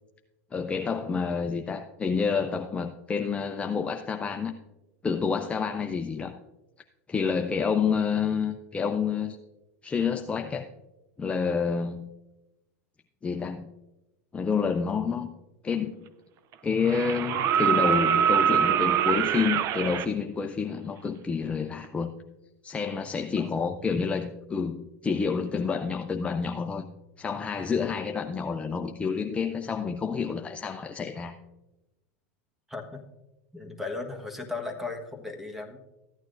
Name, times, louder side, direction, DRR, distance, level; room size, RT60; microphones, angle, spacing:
voice 1, 0.5-4.5 5.0-6.4 7.1-9.4 9.8-10.7 11.2-12.1 13.2-13.7 14.3-15.3 15.6-16.1 16.6-22.1 22.6-26.9 27.2-31.3, left 5 dB, 15° left, 5 dB, 0.5 m, -28 dB
sound 1, 15.7-15.8 16.8-20.1 21.8-21.9, right 9 dB, 40° right, 0.4 m, -24 dB
voice 2, 23.4-23.7 32.7-33.0 33.5-35.8, left 3 dB, 5° right, 4 dB, 1.4 m, -36 dB
14.5 x 9.2 x 2.6 m, 1.0 s
hypercardioid pair, 115°, 8 cm